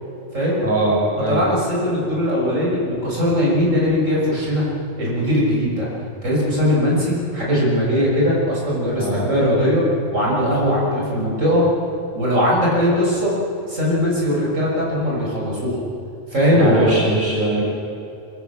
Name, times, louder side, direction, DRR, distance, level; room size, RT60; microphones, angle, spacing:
voice 1, 0.6-1.4 9.0-9.3 16.5-17.6, right 2 dB, 40° right, -4 dB, 6.5 m, -21 dB
voice 2, 1.3-4.7 5.0-5.9 6.2-9.9 10.1-11.6 12.1-13.3 13.7-15.8 16.3-17.0, equal, 75° right, -5 dB, 7.4 m, -19 dB
26.0 x 23.0 x 7.3 m, 2.7 s
omnidirectional pair, 1.3 m